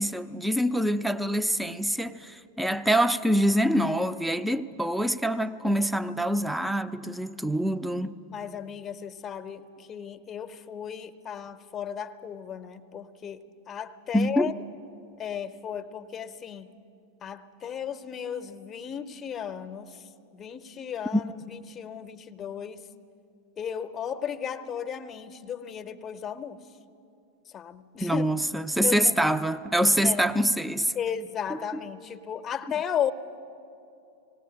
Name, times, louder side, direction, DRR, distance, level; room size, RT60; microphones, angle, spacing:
voice 1, 0.0-8.1 14.1-14.5 21.1-21.2 28.0-30.9, equal, 5° right, 0.5 m, -25 dB
voice 2, 8.3-14.5 15.2-16.8 17.2-22.8 23.6-26.6 27.5-28.3 28.8-29.1 30.0-30.3 30.9-33.1, left 8 dB, 25° left, 0.8 m, -35 dB
19.0 x 18.0 x 8.6 m
figure-of-eight pair, 90°, 0 cm